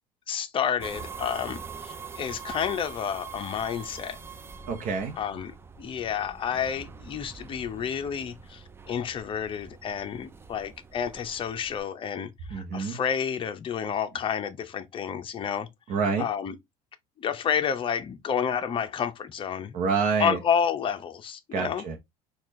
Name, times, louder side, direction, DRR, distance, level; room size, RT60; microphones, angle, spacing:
voice 1, 0.3-4.2 5.2-15.7 16.2-16.6 17.2-19.8 20.2-21.8, left 7 dB, 35° left, 0.7 m, -30 dB
sound 1, 0.8-11.8, right 6 dB, 15° right, 0.4 m, -44 dB
voice 2, 4.7-5.2 12.5-13.0 15.9-16.3 19.7-20.4 21.5-22.0, right 5 dB, 55° right, 0.8 m, -27 dB
4.2 x 2.4 x 3.1 m
supercardioid pair, 110°, 16 cm